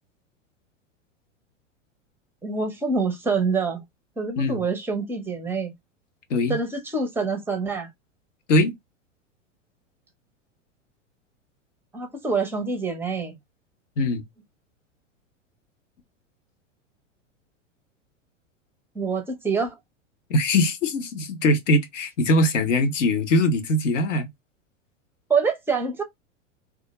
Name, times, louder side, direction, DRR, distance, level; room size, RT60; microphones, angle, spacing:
voice 1, 2.4-3.8 4.2-5.7 6.5-7.9 11.9-13.4 18.9-19.8 25.3-26.0, right 4 dB, 5° right, 0.5 m, -26 dB
voice 2, 20.3-24.3, left 1 dB, 70° left, 0.8 m, -21 dB
2.3 x 2.1 x 2.9 m
figure-of-eight pair, 95°, 38 cm